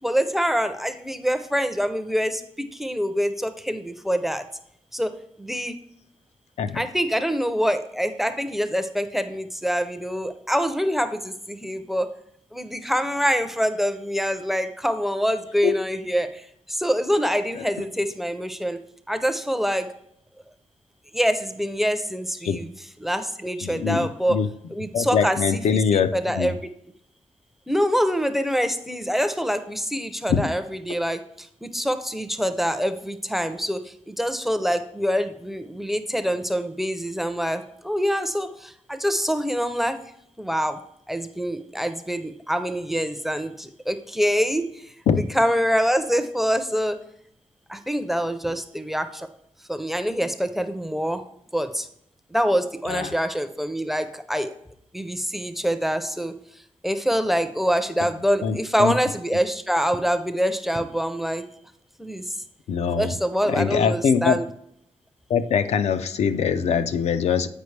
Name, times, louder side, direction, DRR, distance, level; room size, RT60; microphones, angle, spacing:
voice 1, 0.0-4.4 4.9-5.1 5.4-5.7 6.7-12.1 12.5-18.8 19.1-19.9 21.1-22.7 23.0-24.4 24.7-25.6 25.9-26.5 27.7-40.0 40.4-40.8 41.1-47.0 47.7-49.3 49.7-51.2 51.5-51.9 52.3-54.5 54.9-56.3 56.8-61.4 62.0-62.3 63.0-64.5, equal, ahead, 10 dB, 0.4 m, -25 dB
voice 2, 23.6-24.5 24.9-26.5 30.3-30.5 45.1-45.2 52.9-53.1 58.4-58.9 62.7-63.1 63.5-64.4 65.3-67.5, left 6 dB, 85° left, 10 dB, 0.4 m, -23 dB
8.1 x 5.1 x 3.2 m, 0.74 s
wide cardioid pair, 165°, 11 cm